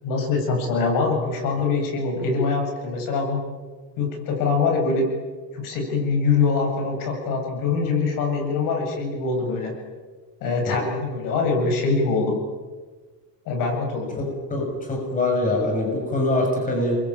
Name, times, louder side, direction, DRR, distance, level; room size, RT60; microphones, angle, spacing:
voice 1, 0.0-3.4 4.0-5.1 5.5-9.7 10.4-12.4 13.5-14.2, left 4 dB, 60° left, 2 dB, 7.8 m, -23 dB
voice 2, 14.2-17.0, left 2 dB, 20° left, 1 dB, 6.5 m, -24 dB
29.0 x 22.5 x 9.0 m, 1.4 s
cardioid pair, 165°, 36 cm